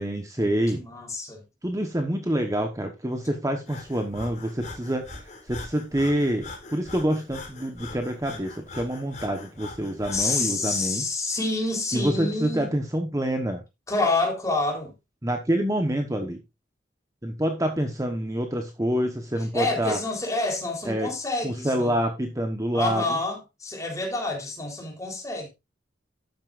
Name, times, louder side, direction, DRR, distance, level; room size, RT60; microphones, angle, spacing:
voice 1, 0.0-0.8 1.6-11.0 11.9-13.6 15.2-16.4 17.2-20.0 20.8-21.1 21.4-23.2, right 1 dB, 15° right, 1.1 m, -27 dB
voice 2, 0.7-1.4 10.1-12.7 13.9-14.9 19.5-21.9 22.7-25.5, left 2 dB, 15° left, 3.7 m, -28 dB
Breathing, 3.6-10.4, left 3 dB, 40° left, 3.5 m, -42 dB
12.0 x 9.4 x 2.5 m
head